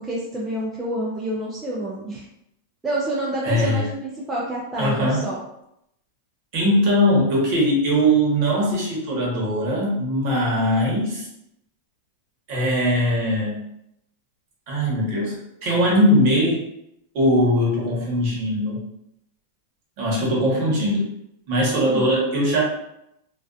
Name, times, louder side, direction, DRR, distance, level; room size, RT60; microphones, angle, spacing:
voice 1, 0.0-2.3 2.8-5.4 21.8-22.1, right 1 dB, 10° right, -6 dB, 0.4 m, -28 dB
voice 2, 3.4-3.8 4.8-5.2 6.5-11.3 12.5-13.6 14.7-16.6 17.1-18.8 20.0-21.1 21.5-22.6, equal, 45° right, -4 dB, 0.9 m, -20 dB
2.5 x 2.3 x 2.3 m, 0.80 s
supercardioid pair, 165°, 0 cm